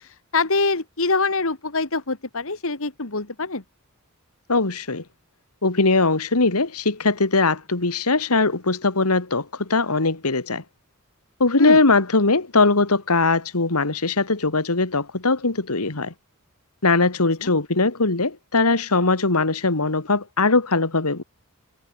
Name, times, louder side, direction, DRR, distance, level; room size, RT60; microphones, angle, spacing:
voice 1, 0.3-3.6 11.6-11.8 17.4-17.5, left 3 dB, 65° left, 2.6 m, -24 dB
voice 2, 4.5-5.0 5.6-10.6 11.4-16.1 16.8-21.2, left 3 dB, 85° left, 2.2 m, -20 dB
head